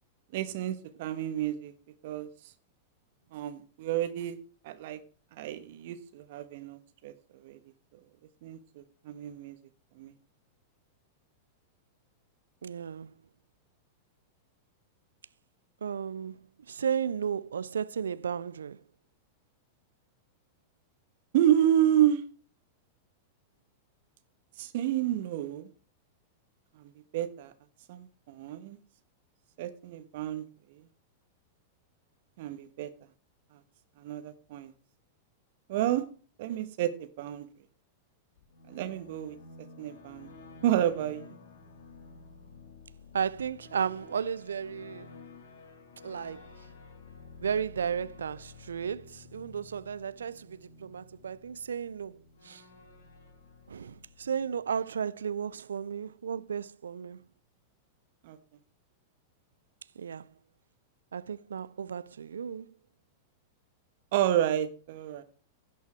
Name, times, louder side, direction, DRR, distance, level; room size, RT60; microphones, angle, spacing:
voice 1, 0.3-1.7 2.0-2.3 3.3-4.4 4.6-5.0 5.3-7.6 8.4-9.6 9.9-10.1 21.3-22.2 24.6-25.7 26.8-27.5 27.9-28.8 29.6-30.4 30.7-30.8 32.4-32.9 34.0-34.7 35.7-36.1 36.4-37.5 38.7-39.4 39.8-40.3 40.6-41.3 58.2-58.4 64.1-65.2, right 11 dB, 60° right, 1.3 m, -30 dB
voice 2, 12.6-13.1 15.8-16.4 16.7-18.8 43.1-45.1 46.0-46.5 47.4-52.2 52.4-52.6 53.7-57.2 60.0-60.3 61.1-62.7, right 7 dB, 80° right, 0.4 m, -34 dB
sound 1, 38.4-55.0, left 4 dB, 75° left, 2.3 m, -52 dB
16.0 x 5.5 x 4.5 m
hypercardioid pair, 100°, 0 cm